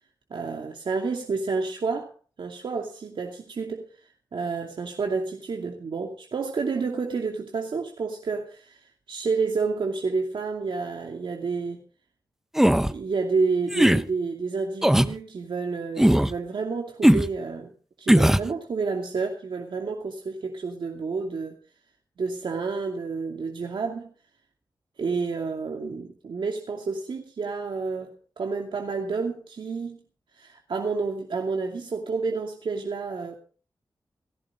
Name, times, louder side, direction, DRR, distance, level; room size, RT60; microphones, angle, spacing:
voice 1, 0.3-2.1 2.4-11.8 12.9-17.7 18.0-21.5 22.2-24.1 25.0-30.0 30.3-33.3, right 4 dB, 90° right, 2 dB, 2.6 m, -30 dB
sound 1, 12.5-12.9 13.7-14.0 14.8-15.1 16.0-16.3 17.0-17.3 18.1-18.5, equal, 5° right, 0.7 m, -18 dB
19.0 x 15.5 x 3.7 m, 0.40 s
wide cardioid pair, 125°, 8 cm